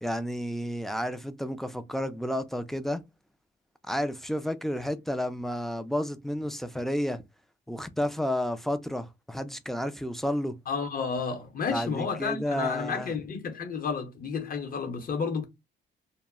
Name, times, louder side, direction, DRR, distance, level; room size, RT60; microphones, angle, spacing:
voice 1, 0.0-3.0 3.9-7.2 7.7-10.6 11.7-13.1, equal, ahead, 0.3 m, -31 dB
voice 2, 10.7-15.5, left 5 dB, 45° left, 0.8 m, -31 dB
2.2 x 2.0 x 3.5 m
cardioid pair, 90°, 20 cm